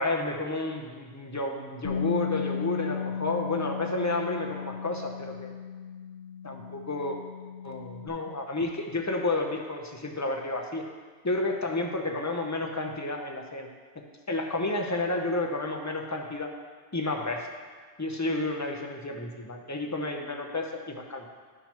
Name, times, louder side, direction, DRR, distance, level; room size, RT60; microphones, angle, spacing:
voice 1, 0.0-5.6 6.4-7.2 7.6-10.8 11.2-13.7 14.0-16.5 16.9-17.5 18.0-21.3, left 2 dB, 20° left, 2 dB, 0.5 m, -31 dB
Bass guitar, 1.8-8.1, left 7 dB, 50° left, 0.9 m, -35 dB
11.0 x 5.7 x 2.9 m, 1.5 s
omnidirectional pair, 1.1 m